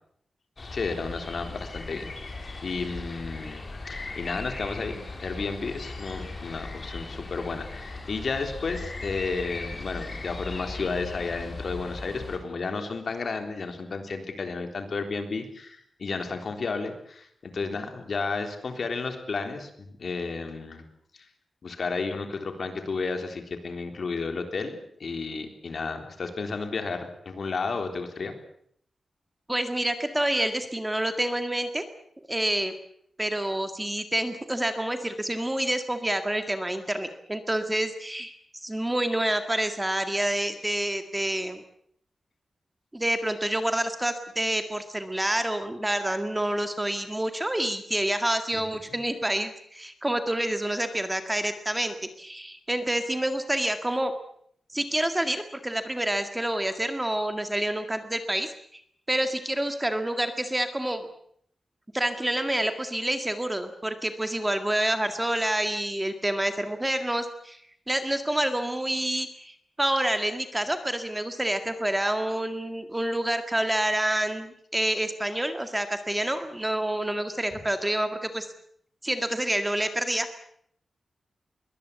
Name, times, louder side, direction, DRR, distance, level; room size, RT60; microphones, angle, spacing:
sound 1, 0.6-12.4, left 3 dB, 35° left, 4.7 m, -38 dB
voice 1, 0.7-2.1 2.6-3.6 3.9-19.7 20.0-20.8 21.1-21.2 21.6-28.3 48.5-48.6 48.9-49.0, left 4 dB, 55° left, 6 dB, 3.6 m, -32 dB
voice 2, 29.5-31.8 32.3-32.7 33.2-41.6 42.9-54.1 54.7-58.5 59.1-61.1 61.9-67.6 67.9-78.5 79.0-80.3, right 1 dB, 10° right, 8 dB, 1.9 m, -28 dB
22.5 x 19.5 x 8.2 m, 0.66 s
wide cardioid pair, 155°, 0 cm